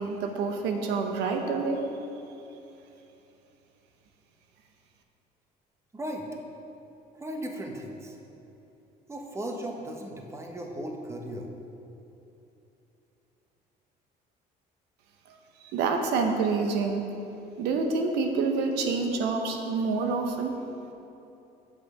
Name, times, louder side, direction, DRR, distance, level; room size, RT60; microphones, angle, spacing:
voice 1, 0.0-1.9 15.7-17.0 17.6-20.6, right 4 dB, 90° right, 3 dB, 0.8 m, -27 dB
voice 2, 5.9-6.2 7.1-8.1 9.1-11.5, right 1 dB, 15° right, 2 dB, 1.0 m, -36 dB
7.5 x 6.3 x 5.0 m, 2.9 s
cardioid pair, 110°, 17 cm